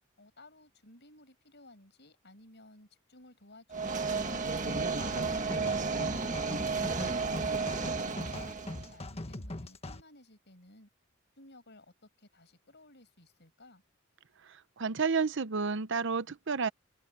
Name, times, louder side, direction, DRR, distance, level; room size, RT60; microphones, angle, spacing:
voice 1, 0.2-7.3 7.7-10.9 11.4-13.8, left 1 dB, 55° left, 7.2 m, -57 dB
sound 1, 3.7-8.9, right 4 dB, 40° right, 1.9 m, -32 dB
sound 2, 4.7-10.0, left 1 dB, 30° left, 1.5 m, -42 dB
voice 2, 14.4-16.7, right 5 dB, 60° right, 0.8 m, -31 dB
head